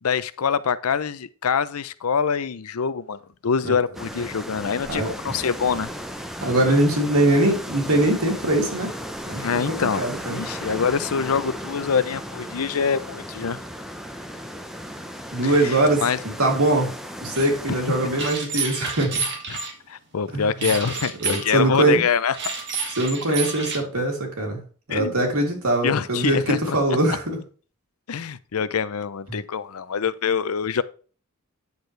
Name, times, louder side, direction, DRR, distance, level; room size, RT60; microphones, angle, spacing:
voice 1, 0.0-5.9 9.4-13.6 15.4-16.2 17.7-17.8 19.5-19.6 19.9-22.4 24.9-25.1 25.8-26.8 28.1-30.8, left 6 dB, 90° left, 0.6 m, -25 dB
sound 1, 3.9-18.3, equal, ahead, 0.8 m, -35 dB
voice 2, 6.4-8.9 9.3-10.4 15.3-16.0 16.4-16.9 17.2-19.2 20.3-20.7 21.2-22.0 23.0-24.6 24.9-27.4, right 1 dB, 90° right, 2.8 m, -22 dB
sound 2, 17.3-17.5 18.2-19.7 20.6-21.5 22.3-23.8, right 5 dB, 55° right, 2.1 m, -29 dB
9.7 x 6.7 x 3.2 m
head